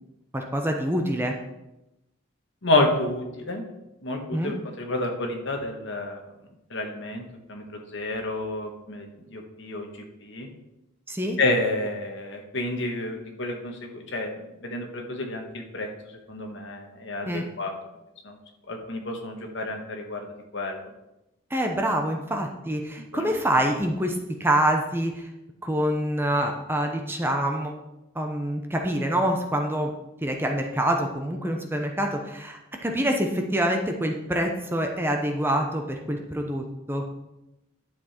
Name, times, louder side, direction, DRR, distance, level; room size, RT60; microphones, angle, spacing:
voice 1, 0.3-1.3 4.3-4.6 11.1-11.4 17.3-17.5 21.5-25.3 25.6-27.7 28.1-29.9 30.2-37.0, right 1 dB, 10° right, 3 dB, 0.8 m, -26 dB
voice 2, 2.6-3.6 4.0-6.2 6.7-7.2 7.5-9.9 10.2-10.5 11.4-14.3 14.6-15.9 16.3-17.7 18.2-18.4 18.7-20.2 20.5-20.8 23.1-23.3, left 2 dB, 55° left, 3 dB, 1.6 m, -29 dB
11.5 x 7.0 x 4.4 m, 0.93 s
head